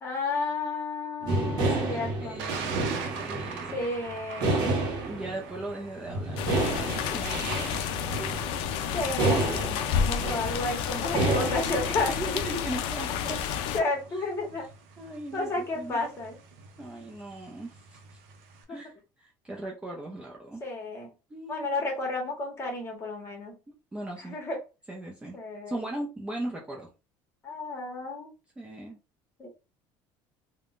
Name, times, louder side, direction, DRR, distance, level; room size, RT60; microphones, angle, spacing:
voice 1, 0.0-2.4 3.7-4.7 8.9-12.2 13.2-13.3 13.7-14.6 15.3-16.4 18.7-18.8 20.6-21.1 21.5-23.6 24.2-24.6 25.3-25.8 27.4-28.3 29.4-29.5, left 3 dB, 30° left, 1 dB, 1.2 m, -32 dB
sound 1, 1.2-5.7 6.0-12.3, right 2 dB, 50° right, 0.8 m, -30 dB
voice 2, 1.3-3.9 5.0-7.9 12.1-13.4 15.0-16.0 16.8-18.2 18.7-20.6 21.3-21.7 23.7-24.4 24.9-25.4 25.7-26.9 28.6-29.0, right 1 dB, 10° right, -2 dB, 0.5 m, -39 dB
Thunder, 2.4-18.6, right 6 dB, 85° right, 0.6 m, -44 dB
sound 2, 6.4-13.8, left 8 dB, 70° left, 0.4 m, -30 dB
3.5 x 2.2 x 2.5 m, 0.29 s
cardioid pair, 145°, 9 cm